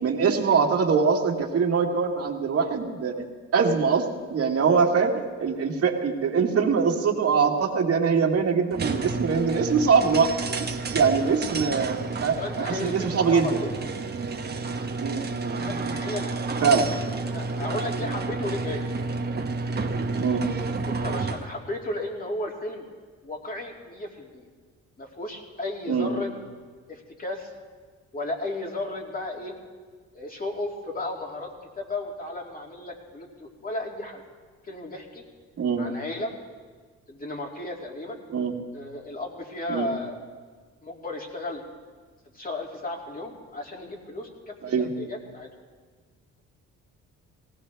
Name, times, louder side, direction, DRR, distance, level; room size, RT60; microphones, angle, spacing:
voice 1, 0.0-3.2 3.5-4.1 4.3-10.3 10.6-13.6 15.0-16.0 16.6-16.9 20.2-20.4 25.9-26.1 35.6-35.9 38.3-38.5 39.7-39.9 44.6-44.9, right 5 dB, 50° right, 1 dB, 1.9 m, -23 dB
sound 1, 8.7-21.5, right 3 dB, 35° right, 1.1 m, -30 dB
voice 2, 12.4-13.7 15.6-18.8 20.8-22.9 23.2-24.5 25.0-26.3 26.9-27.5 28.1-29.5 30.1-31.5 31.8-34.2 34.6-35.2 35.8-36.3 37.1-38.2 38.7-40.2 40.8-41.6 42.3-45.5, left 2 dB, 30° left, 0 dB, 2.6 m, -34 dB
19.0 x 16.5 x 3.4 m, 1.5 s
cardioid pair, 90°, 30 cm